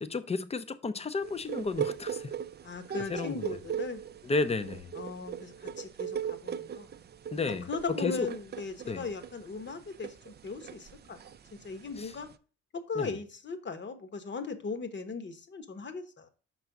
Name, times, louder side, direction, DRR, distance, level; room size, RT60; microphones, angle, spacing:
voice 1, 0.0-2.3 3.1-3.5 4.2-4.9 7.3-8.3 8.9-9.0 12.0-12.1 13.0-13.1, left 4 dB, 20° left, 0.6 m, -32 dB
sound 1, 1.2-12.3, right 8 dB, 35° right, 0.4 m, -39 dB
voice 2, 2.6-4.0 4.9-6.9 7.7-11.3 11.6-12.3 12.7-16.3, left 4 dB, 40° left, 1.0 m, -38 dB
5.4 x 4.1 x 5.9 m
cardioid pair, 90°, 30 cm